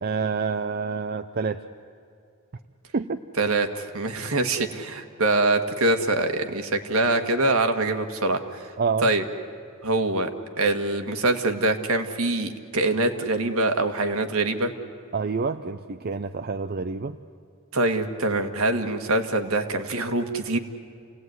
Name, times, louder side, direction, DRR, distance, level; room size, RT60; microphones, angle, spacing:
voice 1, 0.0-1.6 2.9-3.2 8.8-9.1 15.1-17.2, right 5 dB, 45° right, 8 dB, 0.6 m, -27 dB
voice 2, 3.4-8.7 9.0-9.2 9.8-10.3 10.6-14.7 17.7-20.6, right 2 dB, 75° right, 6 dB, 1.7 m, -24 dB
28.5 x 17.5 x 9.5 m, 2.4 s
head